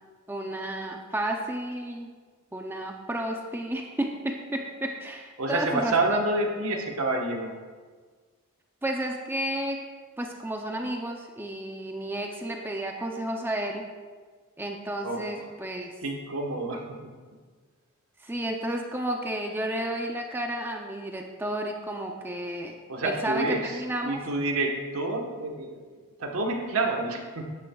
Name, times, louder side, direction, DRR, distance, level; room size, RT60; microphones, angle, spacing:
voice 1, 0.3-2.1 2.5-6.0 8.8-9.8 10.2-13.9 14.6-15.9 18.2-22.7 23.0-24.2, right 1 dB, 10° right, 2 dB, 0.5 m, -32 dB
voice 2, 5.4-7.5 15.0-15.5 16.0-16.9 22.9-23.8 24.0-27.4, right 2 dB, 75° right, 1 dB, 1.3 m, -28 dB
13.0 x 9.7 x 2.3 m, 1.5 s
head